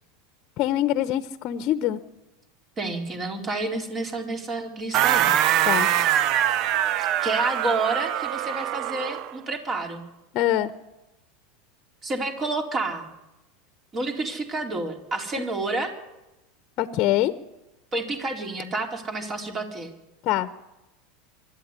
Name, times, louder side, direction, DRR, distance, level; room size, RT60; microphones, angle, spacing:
voice 1, 0.6-2.0 5.7-5.9 10.3-10.7 16.8-17.3 20.2-20.5, left 13 dB, 50° left, 12 dB, 1.0 m, -23 dB
voice 2, 2.8-5.3 7.2-10.0 12.0-13.1 13.9-15.9 17.9-19.9, right 2 dB, 30° right, 3 dB, 4.1 m, -29 dB
sound 1, 4.9-9.3, right 11 dB, 50° right, 0.8 m, -23 dB
24.5 x 12.0 x 9.8 m, 1.0 s
hypercardioid pair, 90°, 0 cm